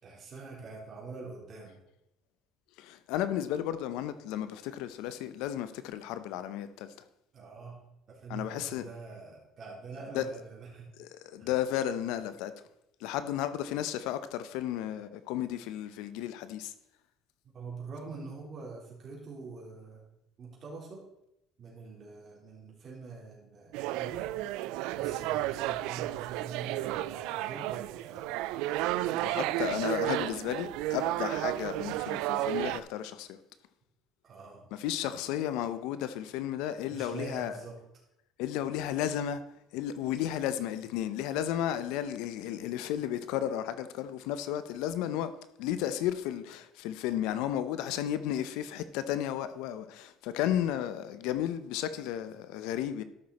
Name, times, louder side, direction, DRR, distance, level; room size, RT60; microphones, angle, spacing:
voice 1, 0.0-1.8 7.3-7.8 8.1-10.9 11.4-11.5 17.5-20.0 20.4-21.0 21.6-24.5 24.9-28.3 34.2-34.7 36.9-37.8 38.6-38.8, right 4 dB, 40° right, 3.7 m, -45 dB
voice 2, 2.8-6.9 8.3-8.9 10.1-10.2 11.0-12.5 13.0-16.7 29.2-33.4 34.7-37.5 38.4-39.4 39.7-45.3 45.6-53.0, left 11 dB, 85° left, 0.7 m, -33 dB
sound 1, 23.7-32.8, right 15 dB, 85° right, 0.3 m, -32 dB
12.5 x 6.2 x 4.2 m
cardioid pair, 115°, 0 cm